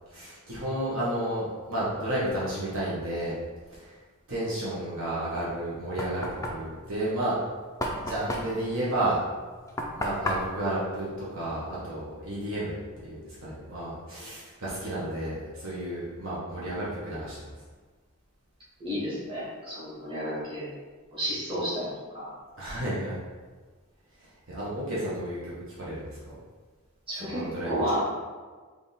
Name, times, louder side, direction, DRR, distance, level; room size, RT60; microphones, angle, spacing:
voice 1, 0.1-3.3 3.7-4.0 4.3-7.4 8.0-9.2 9.9-17.5 22.6-23.2 24.2-25.5 25.8-26.2 27.2-28.0, right 1 dB, 65° right, -8 dB, 0.9 m, -32 dB
Knock, 5.4-11.9, left 1 dB, 15° left, 0.3 m, -35 dB
voice 2, 18.8-20.7 21.1-22.3 27.1-27.4 27.7-28.0, equal, 25° right, -9 dB, 1.5 m, -32 dB
3.4 x 2.4 x 4.0 m, 1.4 s
head